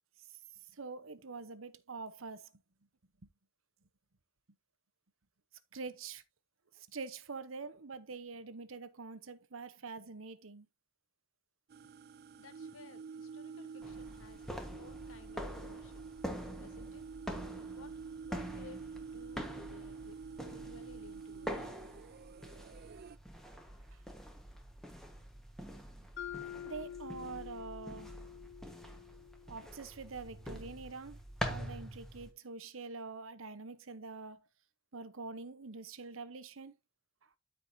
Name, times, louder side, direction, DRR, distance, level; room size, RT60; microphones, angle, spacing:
voice 1, 0.7-2.5 5.7-6.2 6.7-10.7 22.5-22.6 26.6-28.2 29.5-31.2 31.4-34.4 34.9-36.7, right 4 dB, 85° right, 0.9 m, -45 dB
sound 1, 11.7-23.2, right 5 dB, 50° right, 0.4 m, -48 dB
voice 2, 12.4-16.1 16.6-17.0 17.7-17.9 18.3-20.1 20.5-21.7, left 4 dB, 85° left, 1.3 m, -57 dB
sound 2, 13.8-32.3, equal, ahead, 1.4 m, -45 dB
Mallet percussion, 26.2-30.2, left 10 dB, 55° left, 0.7 m, -48 dB
13.5 x 4.8 x 2.7 m
head